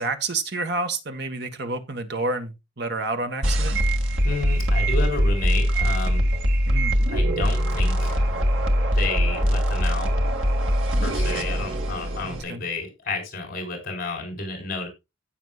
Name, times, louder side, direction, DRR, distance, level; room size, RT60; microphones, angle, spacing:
voice 1, 0.0-3.8 6.7-7.0 12.2-12.6, right 3 dB, 60° right, 1.6 m, -29 dB
sound 1, 3.4-12.4, equal, 85° right, 2.1 m, -22 dB
voice 2, 4.2-6.3 7.1-8.2 8.9-10.1 11.0-14.9, left 3 dB, 50° left, 4.4 m, -31 dB
16.5 x 6.5 x 2.4 m
head